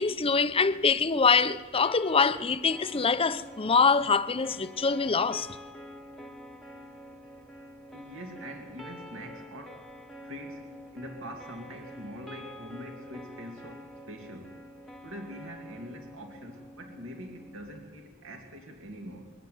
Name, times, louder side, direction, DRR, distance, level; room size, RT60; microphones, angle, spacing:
voice 1, 0.0-5.5, left 5 dB, 25° left, 0.7 m, -24 dB
sound 1, 1.8-17.9, equal, ahead, 1.2 m, -47 dB
voice 2, 7.9-9.8 10.2-14.6 15.0-19.3, equal, 65° right, 2.5 m, -44 dB
22.5 x 16.0 x 9.5 m
head